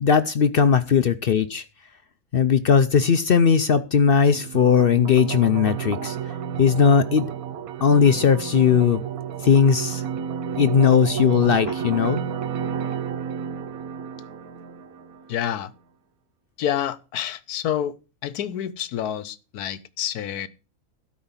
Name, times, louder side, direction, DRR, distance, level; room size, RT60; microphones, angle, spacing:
voice 1, 0.0-1.6 2.3-6.2 6.6-7.2 7.8-9.0 9.4-10.0 10.6-12.2, left 7 dB, 60° left, 0.6 m, -18 dB
sound 1, 4.3-15.3, right 8 dB, 75° right, 1.3 m, -31 dB
voice 2, 15.3-15.7 16.6-17.9 18.2-20.5, left 10 dB, 80° left, 1.3 m, -28 dB
12.5 x 4.8 x 7.2 m
omnidirectional pair, 1.6 m